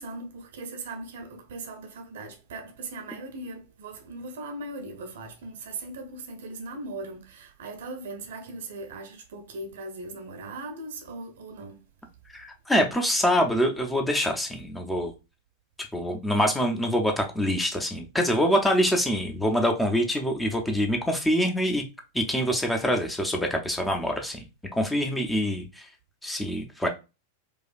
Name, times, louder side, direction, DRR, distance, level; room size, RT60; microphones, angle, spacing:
voice 1, 0.0-11.9, right 2 dB, 60° right, 0.8 m, -39 dB
voice 2, 12.3-15.1 15.9-21.8 22.1-24.4 24.7-25.9 26.2-26.9, equal, 5° left, 0.7 m, -25 dB
4.8 x 2.3 x 2.5 m
figure-of-eight pair, 90°, 0 cm